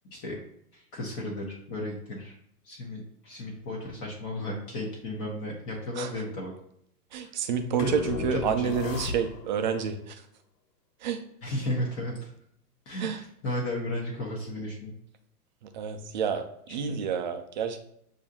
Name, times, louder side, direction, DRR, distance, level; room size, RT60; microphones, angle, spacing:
voice 1, 0.7-2.4 2.6-6.5 7.8-9.0 11.4-12.3 12.9-14.9 16.7-16.8, left 1 dB, 30° left, -2 dB, 1.1 m, -34 dB
voice 2, 7.1-10.2 11.0-11.2 13.0-13.2 15.7-17.8, right 7 dB, 35° right, 7 dB, 0.4 m, -29 dB
sound 1, 7.8-9.7, left 6 dB, 90° left, 0.6 m, -35 dB
6.8 x 2.7 x 2.8 m, 0.71 s
figure-of-eight pair, 110°, 47 cm